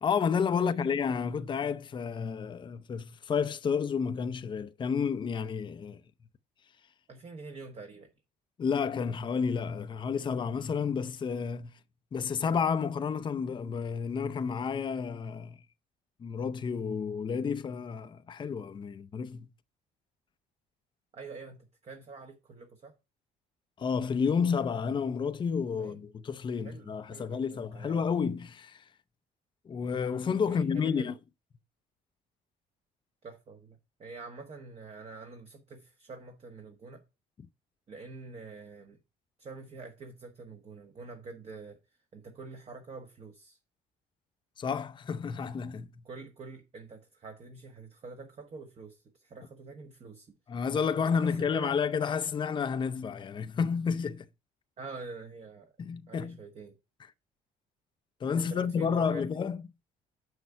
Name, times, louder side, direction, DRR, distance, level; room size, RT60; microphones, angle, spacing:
voice 1, 0.0-6.0 8.6-11.7 12.1-15.6 16.2-19.5 23.8-28.8 29.7-31.1 44.6-45.9 50.5-54.3 55.8-56.4 58.2-59.6, left 6 dB, 30° left, 0.6 m, -30 dB
voice 2, 7.1-8.1 21.1-22.9 25.8-26.0 26.6-28.0 30.4-31.1 33.2-37.0 37.9-39.0 39.4-43.6 46.0-50.4 51.2-51.8 54.8-55.7 56.1-56.8 58.3-59.3, right 4 dB, 40° right, 1.3 m, -46 dB
6.7 x 6.3 x 4.5 m
cardioid pair, 95°, 16 cm